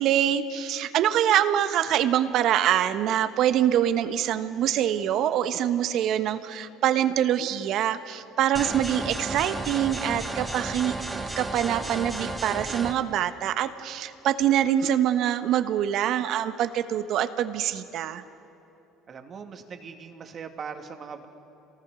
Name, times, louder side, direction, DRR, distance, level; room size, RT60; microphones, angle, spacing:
voice 1, 0.0-10.9 11.4-18.2, right 10 dB, 60° right, 10 dB, 1.1 m, -25 dB
sound 1, 8.5-12.9, right 2 dB, 15° right, 2.2 m, -33 dB
voice 2, 19.1-21.3, right 6 dB, 45° right, 5 dB, 2.2 m, -40 dB
27.5 x 19.5 x 6.2 m, 2.8 s
hypercardioid pair, 70°, 0 cm